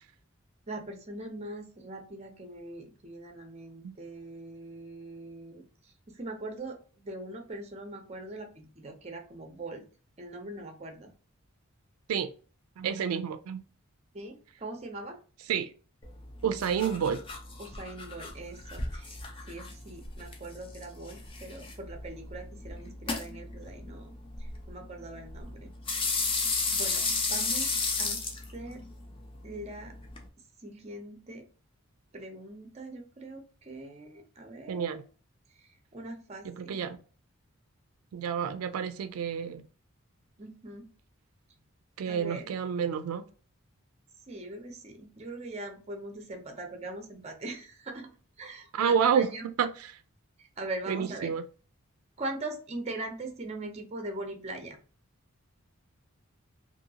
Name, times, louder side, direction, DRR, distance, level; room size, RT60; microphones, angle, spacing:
voice 1, 0.7-9.8 10.2-11.1 14.1-15.2 16.8-17.0 17.6-19.2 19.5-25.7 26.1-26.4 26.7-28.2 28.5-28.8 29.4-29.9 30.6-31.4 32.1-35.0 35.5-36.8 40.4-40.9 42.1-42.5 44.3-48.1 48.4-49.4 50.4-51.3 52.2-54.8, right 2 dB, 30° right, 0.6 m, -41 dB
voice 2, 12.8-13.6 15.5-15.7 16.4-17.2 34.7-35.0 36.4-37.0 38.1-39.6 42.0-43.2 48.7-49.3 49.6-50.0 50.9-51.4, right 7 dB, 85° right, 0.3 m, -29 dB
sound 1, 16.0-30.3, left 3 dB, 25° left, 0.4 m, -35 dB
2.8 x 2.6 x 2.7 m
head